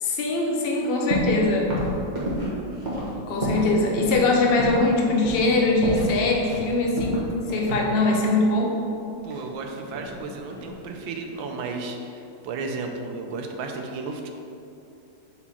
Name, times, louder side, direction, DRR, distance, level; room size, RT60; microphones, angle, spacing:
voice 1, 0.0-1.8 3.3-8.8, left 2 dB, 85° left, -1 dB, 0.5 m, -22 dB
sound 1, 1.1-1.4 1.7-3.7 4.0-4.2 4.6-4.9 5.2-5.5 5.8-6.7 7.0-8.3 9.3-10.2 10.5-10.9, equal, 25° right, 1.4 m, -29 dB
voice 2, 9.2-14.3, right 3 dB, 85° right, 3 dB, 1.4 m, -33 dB
7.0 x 4.3 x 4.2 m, 2.7 s
omnidirectional pair, 2.1 m